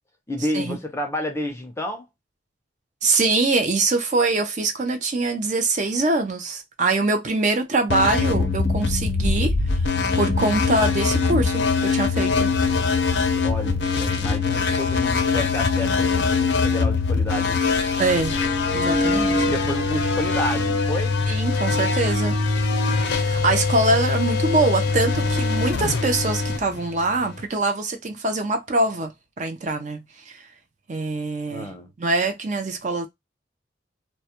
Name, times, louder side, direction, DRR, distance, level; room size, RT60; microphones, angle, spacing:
voice 1, 0.3-2.1 13.4-17.6 19.4-21.2 31.5-31.9, left 1 dB, 15° left, 0.5 m, -30 dB
voice 2, 3.0-12.5 18.0-18.4 18.7-19.6 21.3-22.4 23.1-29.1 29.4-30.4 30.9-31.7 32.0-33.1, right 2 dB, 40° right, 0.4 m, -24 dB
sound 1, 7.9-27.4, left 4 dB, 65° left, 0.5 m, -22 dB
2.2 x 2.1 x 2.8 m
head